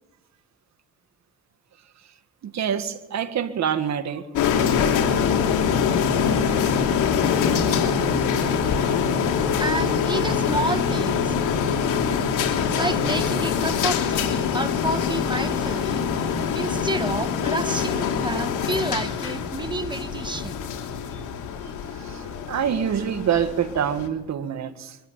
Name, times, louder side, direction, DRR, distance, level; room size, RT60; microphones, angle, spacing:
voice 1, 2.4-4.3 7.4-8.1 8.4-8.5 8.8-9.0 21.6-25.0, right 8 dB, 65° right, 9 dB, 2.0 m, -27 dB
sound 1, 4.4-24.1, left 7 dB, 85° left, 3.0 m, -24 dB
voice 2, 9.6-11.3 12.7-20.7 21.1-21.2, right 2 dB, 15° right, 10 dB, 1.5 m, -30 dB
24.0 x 13.5 x 8.9 m, 0.95 s
cardioid pair, 90°, 30 cm